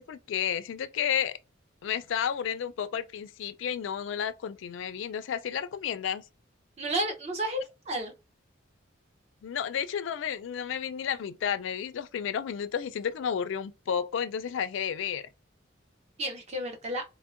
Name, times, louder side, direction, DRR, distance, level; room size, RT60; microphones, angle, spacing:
voice 1, 0.0-1.4 1.8-6.2 9.4-15.3, left 8 dB, 70° left, 0.3 m, -32 dB
voice 2, 6.8-8.1 16.2-17.0, right 1 dB, 35° right, 0.6 m, -32 dB
3.5 x 2.0 x 2.4 m
head